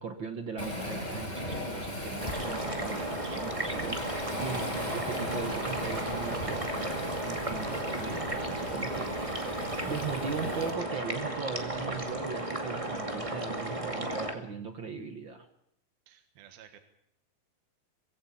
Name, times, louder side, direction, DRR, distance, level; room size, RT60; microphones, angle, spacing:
voice 1, 0.0-15.5, right 5 dB, 60° right, 8 dB, 1.2 m, -39 dB
Waves surf, 0.6-10.7, left 1 dB, 10° left, 4.5 m, -38 dB
voice 2, 1.9-2.4 4.5-4.7 16.1-16.8, right 10 dB, 80° right, 8 dB, 3.4 m, -54 dB
sound 1, 2.2-14.3, right 1 dB, 15° right, 1.4 m, -34 dB
22.0 x 16.5 x 8.5 m, 0.73 s
omnidirectional pair, 4.2 m